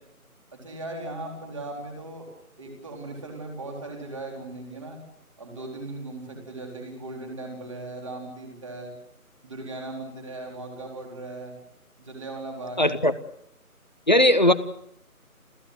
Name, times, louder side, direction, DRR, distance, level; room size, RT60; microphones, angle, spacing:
voice 1, 0.5-2.3 2.6-5.0 5.4-8.9 9.4-11.6 12.0-13.0, right 2 dB, 20° right, 2 dB, 4.1 m, -38 dB
voice 2, 12.8-13.1 14.1-14.5, left 1 dB, 30° left, 13 dB, 0.9 m, -18 dB
29.0 x 15.0 x 7.9 m, 0.75 s
figure-of-eight pair, 170°, 45 cm